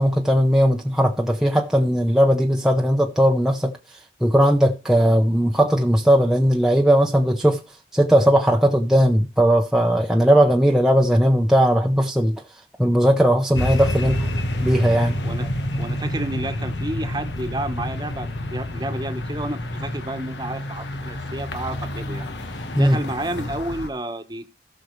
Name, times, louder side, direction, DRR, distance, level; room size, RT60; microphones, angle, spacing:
voice 1, 0.0-3.7 4.2-7.6 7.9-12.4 12.8-14.3 14.6-15.2 22.8-23.0, equal, 5° right, 0.7 m, -18 dB
sound 1, 13.6-23.9, left 1 dB, 85° left, 1.5 m, -28 dB
voice 2, 15.8-24.5, right 1 dB, 25° right, 1.2 m, -31 dB
17.5 x 6.4 x 3.2 m
head